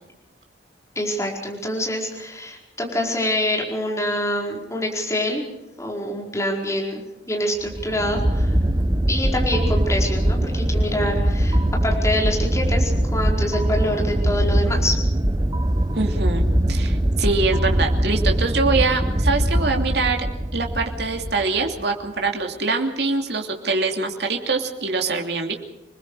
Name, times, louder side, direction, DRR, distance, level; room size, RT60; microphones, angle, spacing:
voice 1, 0.9-5.5 5.8-7.0 7.3-8.5 9.1-15.0, left 1 dB, 15° left, 0 dB, 4.7 m, -26 dB
sound 1, 7.7-21.8, right 1 dB, 20° right, 1.0 m, -22 dB
voice 2, 15.9-20.3 20.5-25.5, right 3 dB, 60° right, 3 dB, 2.8 m, -24 dB
28.0 x 21.0 x 4.9 m, 0.98 s
head